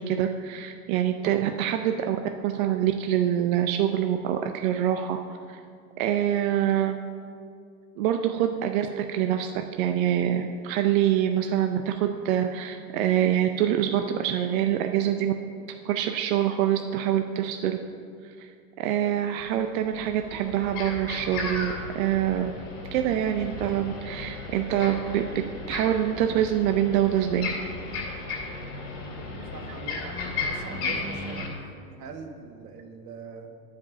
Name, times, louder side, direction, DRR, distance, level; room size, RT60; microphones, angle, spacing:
voice 1, 0.0-2.2 2.4-5.2 5.5-5.6 6.0-7.0 8.0-15.3 15.8-17.8 18.2-18.5 18.8-22.5 22.9-25.2 25.7-27.5, right 10 dB, 60° right, 6 dB, 0.6 m, -25 dB
sound 1, 19.4-19.5 19.9-31.5, left 3 dB, 30° left, 2.5 m, -35 dB
voice 2, 29.5-31.5 32.0-33.5, right 5 dB, 85° right, 3 dB, 1.5 m, -42 dB
9.5 x 5.2 x 6.6 m, 2.3 s
supercardioid pair, 135°, 46 cm